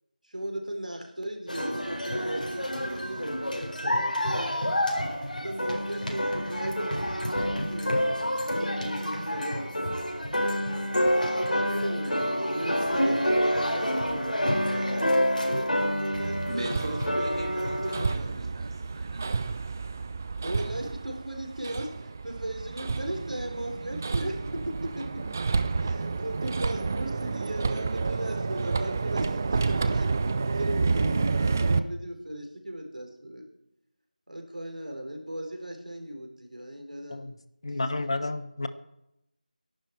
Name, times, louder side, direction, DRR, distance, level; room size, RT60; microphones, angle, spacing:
voice 1, 0.2-4.8 5.4-8.0 8.4-10.0 11.1-18.3 20.4-25.3 25.8-30.1 30.5-33.5 34.3-37.2 37.7-38.3, right 1 dB, 70° right, 3 dB, 4.1 m, -37 dB
sound 1, 1.5-18.1, equal, 80° left, 4.6 m, -28 dB
Hammer, 16.1-31.8, right 4 dB, 20° right, 0.4 m, -30 dB
voice 2, 16.3-19.8, right 2 dB, 40° right, 3 dB, 2.7 m, -40 dB
voice 3, 37.6-38.7, left 2 dB, 40° left, 11 dB, 1.0 m, -31 dB
22.0 x 11.5 x 4.6 m, 0.83 s
figure-of-eight pair, 170°, 4 cm